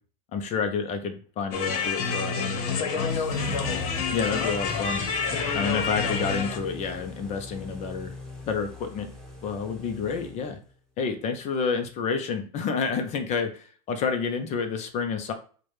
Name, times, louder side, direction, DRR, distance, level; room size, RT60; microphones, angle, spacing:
voice 1, 0.3-5.1 5.5-8.1 8.5-9.1 9.4-10.6 11.0-15.3, left 5 dB, 35° left, 6 dB, 0.5 m, -29 dB
sound 1, 1.5-6.6, left 5 dB, 70° left, 0.9 m, -28 dB
sound 2, 3.1-10.7, left 3 dB, ahead, 1.5 m, -41 dB
4.6 x 2.2 x 3.1 m, 0.42 s
supercardioid pair, 125°, 19 cm